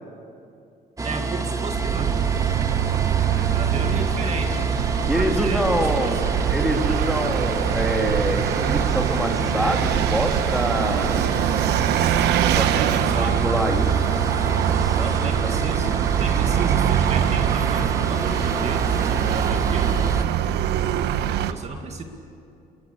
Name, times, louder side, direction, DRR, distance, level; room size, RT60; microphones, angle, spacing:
sound 1, 1.0-20.3, right 3 dB, 20° right, 1.5 m, -27 dB
voice 1, 1.0-2.3 3.5-4.7 5.1-6.3 12.5-13.4 15.0-19.9 21.5-22.0, right 4 dB, 40° right, 4 dB, 2.1 m, -33 dB
Vehicle, 1.7-21.5, right 10 dB, 80° right, 1.1 m, -23 dB
voice 2, 5.0-11.3 12.5-12.6 12.9-14.2 14.7-15.6, equal, ahead, 2 dB, 2.6 m, -26 dB
26.0 x 21.0 x 8.5 m, 2.5 s
cardioid pair, 110°, 17 cm